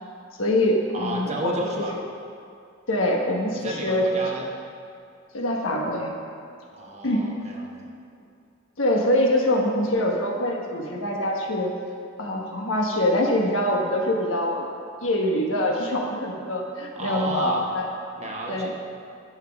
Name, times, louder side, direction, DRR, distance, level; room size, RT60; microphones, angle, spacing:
voice 1, 0.4-1.8 2.9-4.5 5.3-6.1 7.0-7.2 8.8-11.7 12.2-14.7 15.0-17.9 18.5-18.7, left 1 dB, 80° left, 0 dB, 1.3 m, -24 dB
voice 2, 0.9-2.0 3.5-4.5 6.7-7.9 16.9-17.8 18.2-18.7, right 1 dB, 35° right, -1 dB, 1.2 m, -32 dB
14.5 x 5.8 x 3.5 m, 2.4 s
head